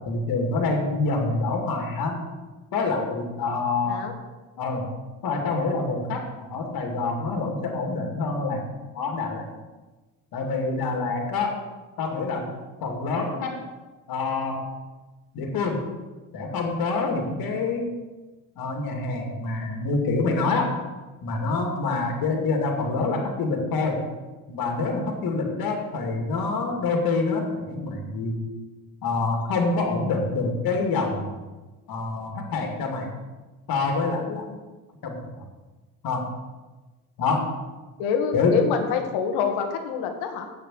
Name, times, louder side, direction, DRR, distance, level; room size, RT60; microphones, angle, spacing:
voice 1, 0.1-2.2 2.7-4.0 4.6-4.9 5.2-8.6 8.9-9.4 10.3-11.5 12.0-12.5 12.8-13.6 14.1-14.6 15.3-15.9 16.3-17.9 18.6-20.7 21.2-24.0 24.5-28.4 29.0-31.3 31.9-33.1 33.7-34.6 35.0-35.2 36.0-36.3 37.2-37.5 38.3-38.6, left 3 dB, 60° left, 2 dB, 2.7 m, -26 dB
voice 2, 3.8-4.1 38.0-40.5, left 6 dB, 75° left, 5 dB, 1.9 m, -26 dB
8.9 x 7.1 x 7.8 m, 1.2 s
supercardioid pair, 80°, 40 cm